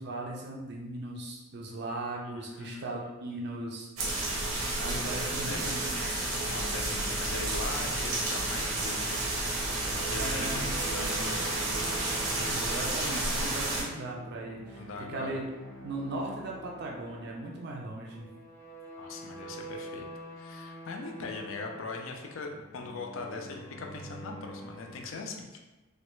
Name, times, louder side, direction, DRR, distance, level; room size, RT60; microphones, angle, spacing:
voice 1, 0.0-4.4 4.8-5.9 10.1-10.7 12.5-14.8 15.1-15.5 15.8-18.3, right 2 dB, 50° right, -2 dB, 0.4 m, -38 dB
voice 2, 2.2-2.9 5.5-5.8 6.4-9.2 9.9-11.4 14.7-15.4 19.0-20.1 20.4-25.6, left 4 dB, 65° left, 2 dB, 0.4 m, -40 dB
sound 1, 4.0-13.8, right 2 dB, 90° right, 0.8 m, -31 dB
sound 2, 9.4-25.0, right 1 dB, 10° left, 0.5 m, -46 dB
3.2 x 2.2 x 3.0 m, 1.1 s
head